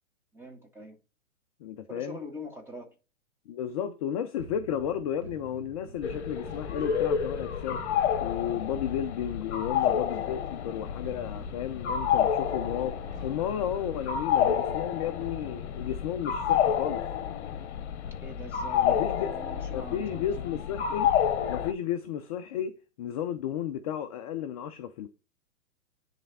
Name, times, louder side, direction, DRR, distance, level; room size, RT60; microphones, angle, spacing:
voice 1, 0.3-1.0 1.9-2.9 18.2-20.3, equal, 5° right, 1.6 m, -44 dB
voice 2, 1.6-2.2 3.5-7.8 8.2-17.0 18.8-19.3 19.7-21.1 21.5-25.1, left 9 dB, 30° left, 0.4 m, -33 dB
sound 1, 4.4-17.7, right 4 dB, 70° right, 1.4 m, -48 dB
sound 2, 6.0-21.7, left 9 dB, 50° left, 1.0 m, -29 dB
10.0 x 3.4 x 4.0 m
figure-of-eight pair, 115°, 42 cm